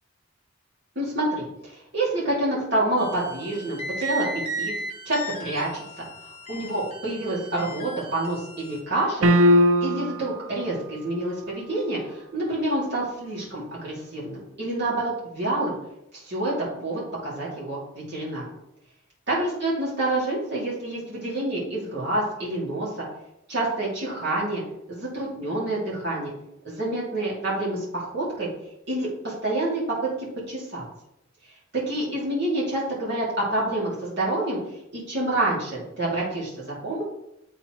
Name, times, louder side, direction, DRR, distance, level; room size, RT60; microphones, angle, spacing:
voice 1, 1.0-4.7 5.0-5.8 6.2-9.3 9.8-15.7 16.1-16.5 16.8-17.8 18.1-18.4 19.3-22.9 23.5-24.6 24.9-26.3 26.6-28.5 28.9-29.8 30.2-30.8 31.7-34.6 34.9-37.0, right 1 dB, 55° right, -7 dB, 2.5 m, -27 dB
sound 1, 3.0-8.8, right 1 dB, 30° left, 1.0 m, -36 dB
sound 2, 9.2-10.3, equal, 85° right, 0.6 m, -18 dB
11.0 x 4.2 x 3.1 m, 0.84 s
head